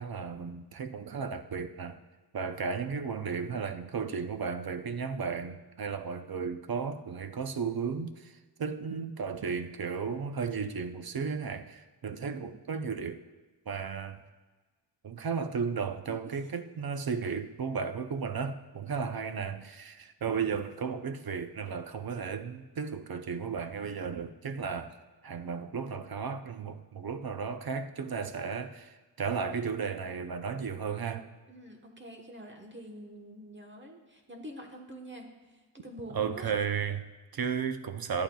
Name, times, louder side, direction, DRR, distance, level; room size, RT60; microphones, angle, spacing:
voice 1, 0.0-2.0 2.3-13.2 13.7-14.2 15.0-25.0 25.2-31.3 36.1-38.2, right 6 dB, 55° right, 9 dB, 0.7 m, -34 dB
voice 2, 16.0-16.4 18.7-19.1 31.5-36.5, equal, 25° right, 1 dB, 1.2 m, -46 dB
14.0 x 11.5 x 2.3 m, 1.3 s
wide cardioid pair, 110°, 43 cm